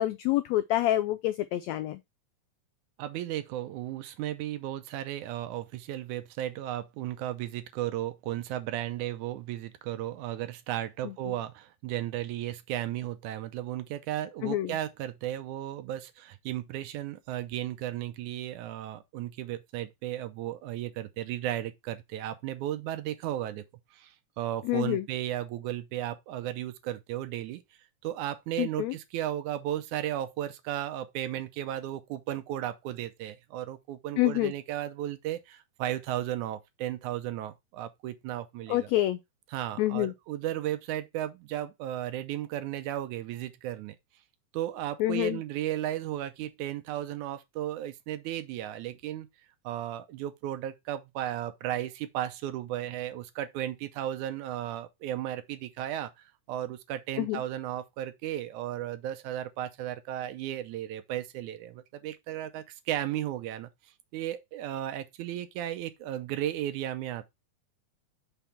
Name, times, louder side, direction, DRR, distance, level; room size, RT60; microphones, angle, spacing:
voice 1, 0.0-2.0 14.4-14.7 24.7-25.0 28.6-28.9 34.2-34.5 38.7-39.2 39.8-40.1 45.0-45.4 57.2-57.4, left 15 dB, 85° left, 1.5 m, -27 dB
voice 2, 3.0-23.6 23.9-27.6 28.0-38.9 39.5-44.0 44.5-49.3 49.6-63.7 64.1-67.3, right 12 dB, 80° right, 2.1 m, -35 dB
6.0 x 3.4 x 5.5 m
omnidirectional pair, 3.6 m